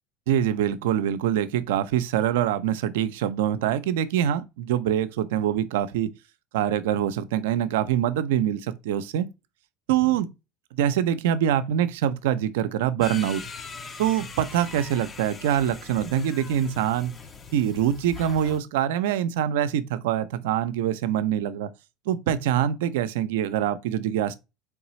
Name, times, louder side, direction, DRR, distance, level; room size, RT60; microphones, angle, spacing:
voice 1, 0.3-6.1 6.5-9.3 9.9-10.3 10.7-13.4 14.0-17.1 17.5-21.7 22.1-24.3, right 10 dB, 80° right, 0.4 m, -24 dB
sound 1, 13.0-18.6, left 4 dB, 30° left, 0.6 m, -41 dB
3.9 x 3.3 x 3.0 m
supercardioid pair, 90°, 0 cm